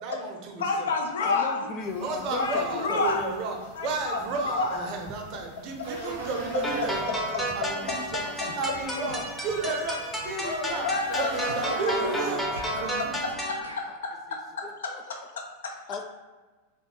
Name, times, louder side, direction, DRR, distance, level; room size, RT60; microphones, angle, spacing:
voice 1, 0.0-0.9 2.0-10.0 10.2-10.9 11.2-13.1, right 3 dB, 40° right, 3 dB, 0.7 m, -33 dB
voice 2, 0.6-1.6 2.4-3.2 3.8-4.9 7.6-7.7 8.4-8.5 9.6-9.8 10.4-11.8 12.7-12.8 13.2-15.7, left 3 dB, 65° left, 2 dB, 0.6 m, -30 dB
voice 3, 1.2-3.1 14.6-15.4 15.9-16.0, left 5 dB, 30° left, 6 dB, 0.3 m, -36 dB
sound 1, 1.8-13.3, right 2 dB, 90° left, 1.5 m, -41 dB
sound 2, 6.6-13.6, equal, 5° left, 0.7 m, -32 dB
sound 3, 8.3-8.6 9.1-9.2 9.6-9.8 10.2-10.4 10.7-11.6 12.0-12.1 12.5-14.0, right 1 dB, 75° right, 0.6 m, -43 dB
3.8 x 3.0 x 3.1 m, 1.3 s
figure-of-eight pair, 90°, 0 cm